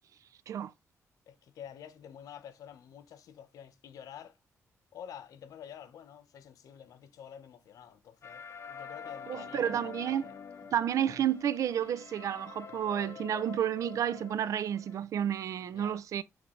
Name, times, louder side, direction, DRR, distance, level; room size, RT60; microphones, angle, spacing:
voice 1, 1.3-4.4 4.9-10.4 15.6-16.0, left 9 dB, 90° left, 0.8 m, -49 dB
sound 1, 8.2-15.0, left 7 dB, 50° left, 0.7 m, -46 dB
voice 2, 9.3-10.3 10.7-16.2, right 10 dB, 70° right, 0.4 m, -31 dB
8.1 x 3.4 x 3.8 m
cardioid pair, 125°, 6 cm